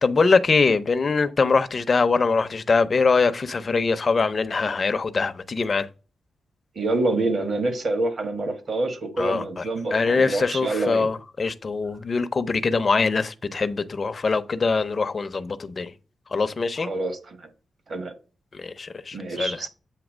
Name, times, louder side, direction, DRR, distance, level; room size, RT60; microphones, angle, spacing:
voice 1, 0.0-5.9 9.2-9.6 9.9-15.9 16.3-16.9 18.5-19.6, left 4 dB, 35° left, 0.6 m, -23 dB
voice 2, 6.7-11.1 16.8-17.4 17.9-18.1 19.1-19.7, right 2 dB, 50° right, 1.4 m, -26 dB
8.1 x 2.8 x 6.1 m
wide cardioid pair, 130°, 0 cm